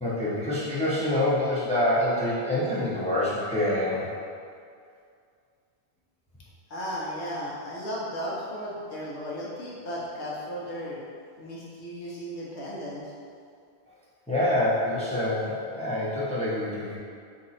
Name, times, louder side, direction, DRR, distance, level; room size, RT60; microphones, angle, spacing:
voice 1, 0.0-4.1 14.3-17.0, left 1 dB, 10° left, -9 dB, 0.5 m, -26 dB
voice 2, 6.7-11.0 11.4-13.0, equal, 90° left, -5 dB, 1.0 m, -35 dB
2.9 x 2.7 x 4.0 m, 2.3 s
omnidirectional pair, 1.1 m